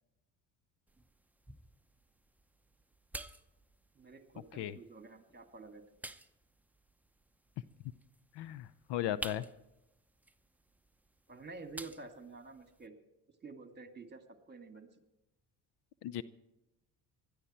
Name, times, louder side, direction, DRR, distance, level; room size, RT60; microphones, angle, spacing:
sound 1, 0.9-12.9, right 1 dB, 5° right, 0.8 m, -52 dB
voice 1, 3.9-5.8 11.3-12.9 13.4-14.9, right 3 dB, 20° right, 7 dB, 2.4 m, -49 dB
voice 2, 8.4-9.4 16.0-16.2, left 12 dB, 60° left, 17 dB, 0.8 m, -36 dB
20.5 x 13.0 x 4.4 m, 0.93 s
hypercardioid pair, 65°, 46 cm